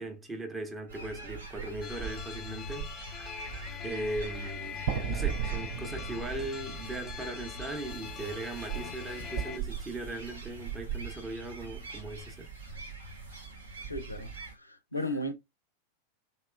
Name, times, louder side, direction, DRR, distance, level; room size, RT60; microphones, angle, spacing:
voice 1, 0.0-3.3 3.8-12.5, right 2 dB, 15° right, 0.6 m, -39 dB
sound 1, 0.9-14.6, right 5 dB, 70° right, 0.9 m, -40 dB
sound 2, 1.8-9.6, left 8 dB, 25° left, 0.4 m, -43 dB
sound 3, 4.9-8.9, right 6 dB, 50° right, 0.3 m, -38 dB
voice 2, 13.8-15.3, left 1 dB, 85° left, 0.4 m, -36 dB
2.9 x 2.9 x 2.3 m
figure-of-eight pair, 90°, 0 cm